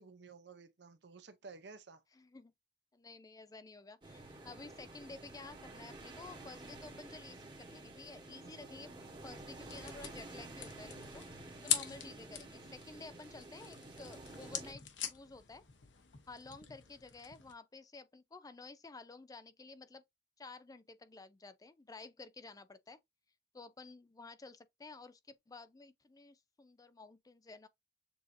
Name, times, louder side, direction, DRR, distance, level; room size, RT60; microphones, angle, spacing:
voice 1, 0.0-2.0 8.4-8.7, right 4 dB, 70° right, 0.7 m, -54 dB
voice 2, 2.1-2.5 2.9-8.9 9.2-15.6 16.3-20.0 20.4-23.0 23.5-27.7, left 3 dB, 20° left, 0.4 m, -52 dB
sound 1, 4.0-14.7, right 2 dB, 25° right, 1.4 m, -51 dB
sound 2, 9.1-17.5, left 10 dB, 90° left, 1.0 m, -43 dB
7.0 x 2.7 x 2.6 m
head